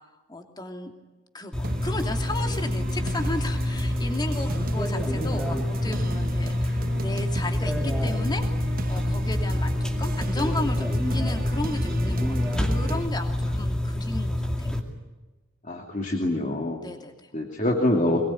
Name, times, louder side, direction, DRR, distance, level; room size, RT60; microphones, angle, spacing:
voice 1, 0.3-0.9 1.3-8.4 8.9-14.7 16.8-17.3, left 2 dB, 20° left, 3 dB, 2.8 m, -34 dB
sound 1, 1.5-14.8, left 1 dB, 5° left, 2.4 m, -27 dB
sound 2, 1.6-13.1, right 2 dB, 45° right, 1.0 m, -36 dB
voice 2, 15.6-16.8 17.3-18.2, left 1 dB, 35° left, 0 dB, 2.6 m, -25 dB
23.5 x 21.5 x 9.9 m, 1.1 s
head